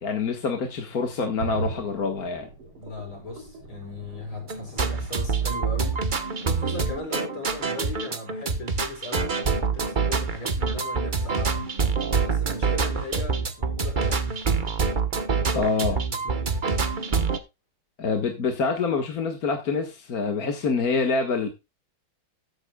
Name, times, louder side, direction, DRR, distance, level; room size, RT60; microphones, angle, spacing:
voice 1, 0.0-2.5 15.6-16.0 18.0-21.5, left 4 dB, 45° left, 1.8 m, -26 dB
sound 1, 1.4-7.2 7.6-7.7, right 3 dB, 80° right, 4.2 m, -39 dB
voice 2, 2.8-6.0 6.4-11.7 12.2-14.7 15.3-16.6, left 2 dB, 70° left, 6.8 m, -37 dB
sound 2, 4.5-17.4, right 5 dB, 40° right, 0.7 m, -26 dB
14.0 x 9.9 x 2.3 m
omnidirectional pair, 2.3 m